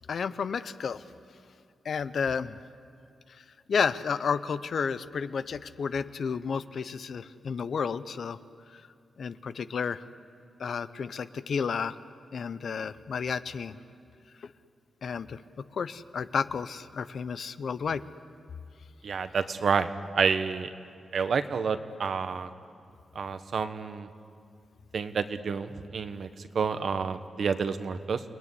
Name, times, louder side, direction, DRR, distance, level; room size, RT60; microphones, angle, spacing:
voice 1, 0.1-1.0 1.8-2.6 3.7-8.4 8.7-8.8 9.2-10.0 10.6-11.9 12.3-13.8 14.4-14.5 15.0-18.0, left 6 dB, 60° left, 14 dB, 0.8 m, -31 dB
voice 2, 19.0-20.7 21.1-22.5 23.1-24.1 24.9-28.2, right 5 dB, 60° right, 10 dB, 1.2 m, -29 dB
29.5 x 20.0 x 9.8 m, 2.5 s
wide cardioid pair, 135°, 0 cm